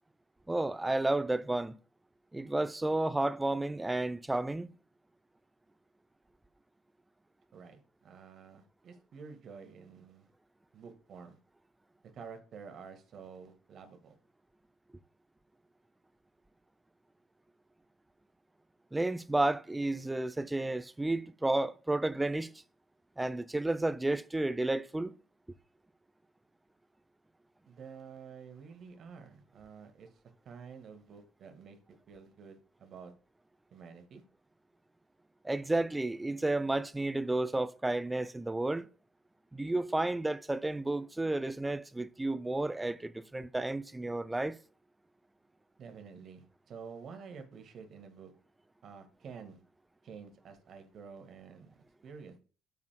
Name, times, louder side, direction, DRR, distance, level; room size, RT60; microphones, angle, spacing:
voice 1, 0.5-1.8 2.3-4.7 18.9-22.5 23.2-25.1 35.4-38.9 39.5-44.6, right 2 dB, 10° right, 0.6 m, -32 dB
voice 2, 7.5-10.3 10.7-11.4 12.1-14.1 27.6-30.1 30.4-33.1 33.7-34.2 45.8-48.3 48.8-49.6 50.0-52.4, right 6 dB, 45° right, 1.6 m, -50 dB
14.0 x 5.8 x 2.2 m
figure-of-eight pair, 50°, 0 cm